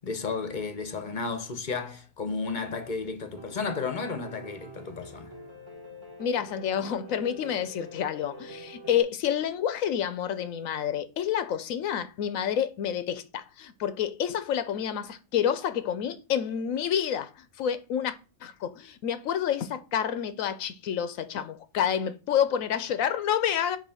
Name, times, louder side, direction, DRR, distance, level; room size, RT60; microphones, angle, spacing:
voice 1, 0.0-5.3, left 4 dB, 40° left, 0.9 m, -33 dB
Piano, 3.4-9.0, right 1 dB, 20° right, 1.3 m, -45 dB
voice 2, 6.2-18.1 18.4-23.8, left 9 dB, 85° left, 1.1 m, -29 dB
7.4 x 2.9 x 5.6 m
omnidirectional pair, 1.4 m